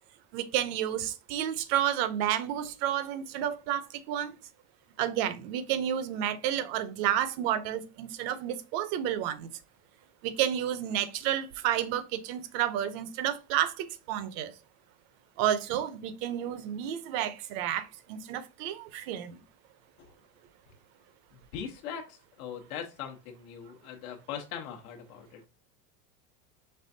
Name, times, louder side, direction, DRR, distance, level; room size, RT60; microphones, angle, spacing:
voice 1, 0.3-4.3 5.0-9.5 10.2-14.5 15.4-19.4, right 11 dB, 45° right, 0.6 m, -31 dB
voice 2, 21.3-25.5, left 8 dB, 75° left, 1.0 m, -41 dB
5.4 x 3.4 x 2.6 m
supercardioid pair, 170°, 42 cm